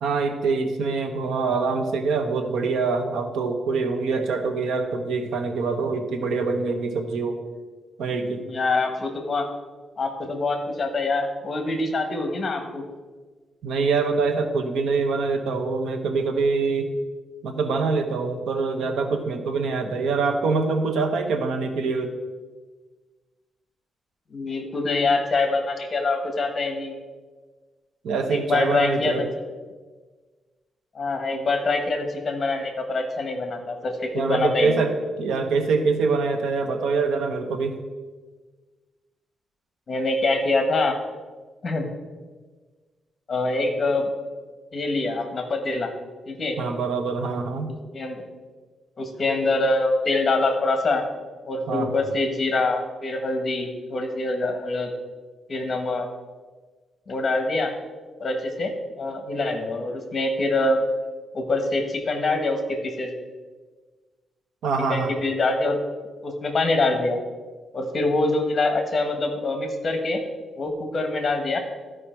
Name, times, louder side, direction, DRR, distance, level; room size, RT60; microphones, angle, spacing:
voice 1, 0.0-7.4 8.0-8.5 13.6-16.9 17.4-22.1 28.0-29.3 34.1-34.9 35.2-37.8 46.6-47.7 51.7-51.9 64.6-65.1, right 4 dB, 85° right, 6 dB, 1.0 m, -24 dB
voice 2, 8.4-9.5 10.0-12.8 24.3-27.0 28.3-29.1 30.9-34.8 39.9-40.9 41.6-41.9 43.3-44.1 44.7-45.9 46.3-46.6 47.9-48.2 49.0-51.0 51.5-54.9 55.5-56.1 57.1-57.7 58.2-60.8 61.3-63.1 64.9-65.8 66.2-67.2 67.7-70.2 70.6-71.6, left 2 dB, 35° left, 5 dB, 1.3 m, -25 dB
12.5 x 5.0 x 4.5 m, 1.4 s
wide cardioid pair, 145°, 0 cm